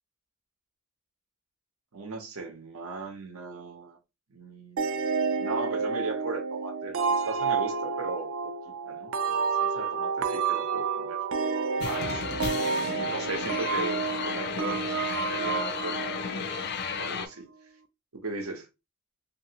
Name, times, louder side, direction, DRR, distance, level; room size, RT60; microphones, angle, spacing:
voice 1, 1.9-4.0 4.3-11.2 11.8-17.5 18.1-18.7, right 3 dB, 90° right, 0.8 m, -38 dB
sound 1, 4.8-17.2, right 5 dB, 70° right, 0.4 m, -30 dB
sound 2, 11.8-17.3, left 7 dB, 55° left, 0.4 m, -33 dB
2.8 x 2.6 x 2.8 m
head